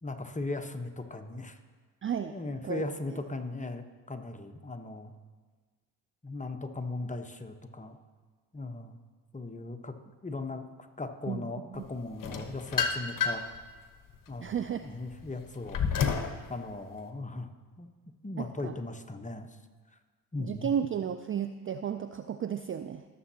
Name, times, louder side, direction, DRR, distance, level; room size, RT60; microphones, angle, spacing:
voice 1, 0.0-1.6 2.3-5.1 6.2-8.0 8.5-9.0 9.3-9.9 10.2-10.7 11.0-13.4 14.3-14.6 14.8-15.8 16.5-17.5 17.8-17.9 18.2-19.5 20.3-20.7, left 2 dB, 15° left, 6 dB, 1.1 m, -38 dB
voice 2, 2.0-2.4 2.6-2.8 11.3-11.4 11.7-11.8 14.4-14.9 18.4-18.8 20.4-23.1, right 8 dB, 30° right, 10 dB, 0.4 m, -33 dB
sound 1, 12.2-13.6 14.1-16.4, left 6 dB, 45° left, 1.1 m, -30 dB
18.0 x 7.3 x 2.9 m, 1.4 s
hypercardioid pair, 55°, 45 cm